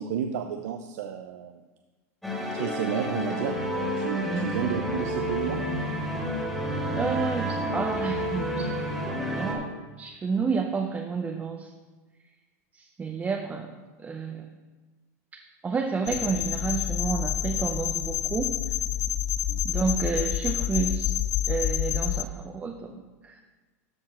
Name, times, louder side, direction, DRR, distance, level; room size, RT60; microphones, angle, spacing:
voice 1, 0.0-1.6 2.5-3.6 4.0-5.6 19.5-19.6, right 9 dB, 75° right, 6 dB, 0.6 m, -31 dB
sound 1, 2.2-9.6, equal, 5° left, 2.2 m, -30 dB
voice 2, 6.9-8.8 9.2-11.7 12.7-13.7 14.0-14.5 15.6-18.6 19.6-21.1 21.5-23.4, right 5 dB, 15° right, 3 dB, 0.6 m, -30 dB
sound 2, 16.1-22.2, left 12 dB, 45° left, 0.4 m, -28 dB
13.0 x 4.8 x 4.3 m, 1.3 s
supercardioid pair, 125°, 9 cm